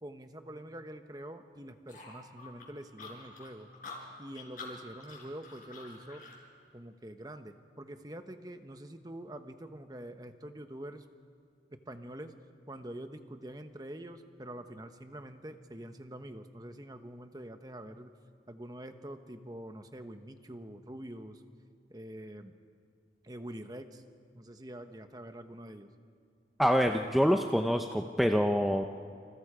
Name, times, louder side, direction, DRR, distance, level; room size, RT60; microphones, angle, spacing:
voice 1, 0.0-3.7 4.2-6.2 6.7-11.0 11.7-12.3 12.7-18.1 18.5-21.4 21.9-22.5 23.2-24.0 24.3-25.9, right 1 dB, 20° right, 7 dB, 1.1 m, -45 dB
sound 1, 1.9-6.4, left 3 dB, 50° left, 5.6 m, -48 dB
voice 2, 26.6-28.8, equal, ahead, 4 dB, 0.6 m, -26 dB
28.5 x 27.5 x 5.0 m, 2.2 s
head